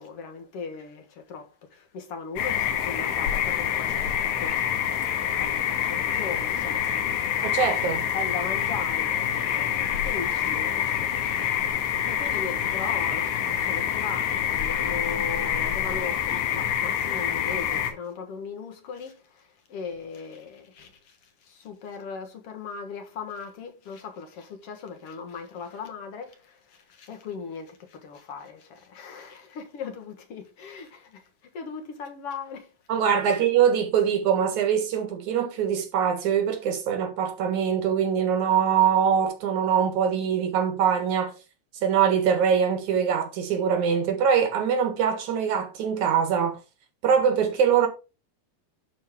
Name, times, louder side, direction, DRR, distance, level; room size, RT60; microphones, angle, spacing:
voice 1, 0.0-5.0 5.4-7.5 8.1-11.7 12.1-31.3 31.5-32.7 33.2-33.4, left 5 dB, 55° left, 2.3 m, -38 dB
sound 1, 2.4-17.9, left 9 dB, 85° left, 2.6 m, -26 dB
voice 2, 7.4-8.1 32.9-41.3 41.8-46.6 47.0-47.9, right 7 dB, 80° right, 3.1 m, -23 dB
11.0 x 4.6 x 3.7 m
omnidirectional pair, 3.3 m